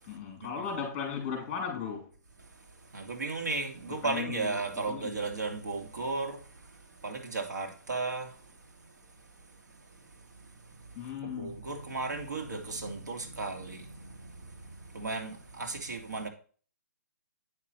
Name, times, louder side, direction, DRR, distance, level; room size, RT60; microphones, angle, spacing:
voice 1, 0.0-2.1 3.9-5.3 10.9-11.6, left 7 dB, 20° left, 3.5 m, -37 dB
voice 2, 2.9-6.4 7.0-8.3 11.0-16.3, right 3 dB, 90° right, 2.5 m, -35 dB
9.6 x 6.0 x 4.4 m
hypercardioid pair, 160°, 9 cm